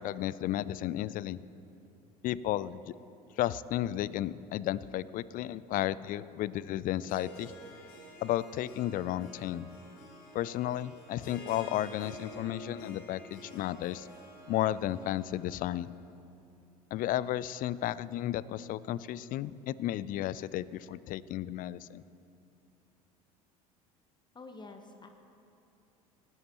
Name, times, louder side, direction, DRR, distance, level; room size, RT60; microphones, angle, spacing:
voice 1, 0.0-1.4 2.2-2.8 3.4-7.5 8.2-9.7 10.3-14.1 14.5-15.9 16.9-22.0, left 13 dB, 45° left, 19 dB, 0.4 m, -33 dB
Harp, 6.9-16.0, equal, 75° left, 3.6 m, -50 dB
voice 2, 24.3-25.1, left 3 dB, 25° left, 5 dB, 1.1 m, -48 dB
18.5 x 13.5 x 3.1 m, 2.7 s
hypercardioid pair, 70°, 19 cm